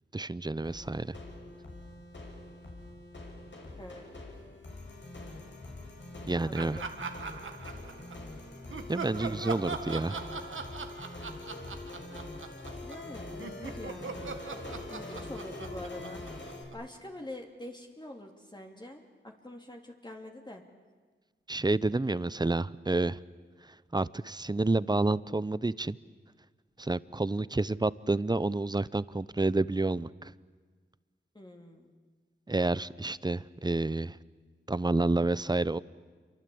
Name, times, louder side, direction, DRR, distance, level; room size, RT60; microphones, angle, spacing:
voice 1, 0.1-1.2 6.3-6.8 8.9-10.2 21.5-23.2 23.7-26.0 26.8-30.3 32.5-34.2 34.7-35.8, right 2 dB, 20° right, 18 dB, 0.7 m, -29 dB
sound 1, 0.6-16.6, left 2 dB, 70° left, 6.5 m, -44 dB
voice 2, 3.8-4.1 6.4-6.9 12.8-14.3 14.9-20.6 31.3-31.9, left 1 dB, 20° left, 1 dB, 2.8 m, -45 dB
Laughter, 6.5-8.3 8.7-13.1 13.4-17.0, right 4 dB, 90° right, 1.8 m, -41 dB
27.5 x 23.5 x 8.6 m, 1.5 s
wide cardioid pair, 60°, 20 cm